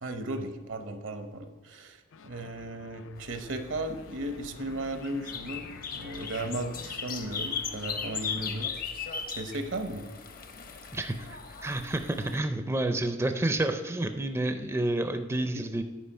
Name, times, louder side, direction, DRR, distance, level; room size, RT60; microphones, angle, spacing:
voice 1, 0.0-2.0 2.2-5.6 5.9-8.7 9.3-10.1 15.5-15.6, right 1 dB, 75° right, 8 dB, 0.9 m, -35 dB
sound 1, 2.1-8.7, left 5 dB, 85° left, 0.4 m, -50 dB
sound 2, 3.2-12.4, left 6 dB, 50° left, 0.7 m, -38 dB
voice 2, 10.9-15.8, right 1 dB, 15° right, 7 dB, 0.4 m, -29 dB
10.0 x 4.8 x 5.4 m, 1.4 s
head